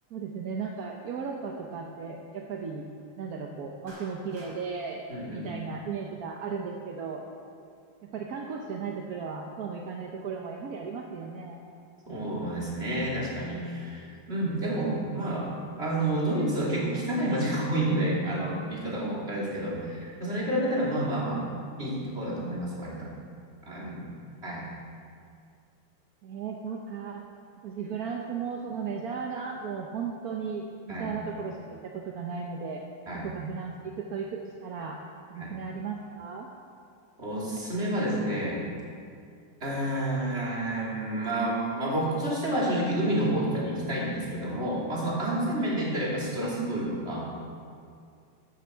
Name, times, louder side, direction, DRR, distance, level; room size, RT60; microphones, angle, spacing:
voice 1, 0.1-2.9 3.2-7.2 8.0-11.6 26.2-27.2 27.6-32.8 33.1-35.0 35.3-36.5 45.5-45.7, right 5 dB, 55° right, 1 dB, 1.1 m, -36 dB
Clapping, 3.9-4.6, equal, 85° right, 4.5 m, -48 dB
voice 2, 5.1-5.5 12.1-15.5 15.8-21.4 21.8-23.1 23.6-24.1 24.4-24.6 30.9-31.1 33.1-33.3 35.4-35.5 37.2-38.6 39.6-47.4, right 1 dB, 30° right, -5 dB, 3.1 m, -29 dB
14.5 x 11.0 x 4.6 m, 2.3 s
omnidirectional pair, 2.4 m